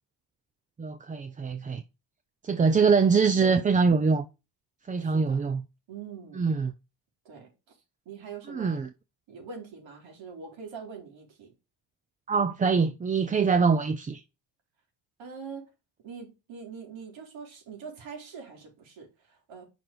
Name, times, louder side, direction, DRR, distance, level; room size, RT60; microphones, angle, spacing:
voice 1, 0.8-1.8 2.4-4.2 4.9-5.6 6.4-6.7 8.5-8.9 12.3-14.2, right 5 dB, 20° right, 0.4 m, -24 dB
voice 2, 5.0-5.4 5.9-6.5 7.3-7.8 8.1-8.8 9.3-11.5 15.2-15.7 16.0-19.6, right 5 dB, 75° right, 3.6 m, -43 dB
6.1 x 4.5 x 5.0 m
cardioid pair, 130°, 46 cm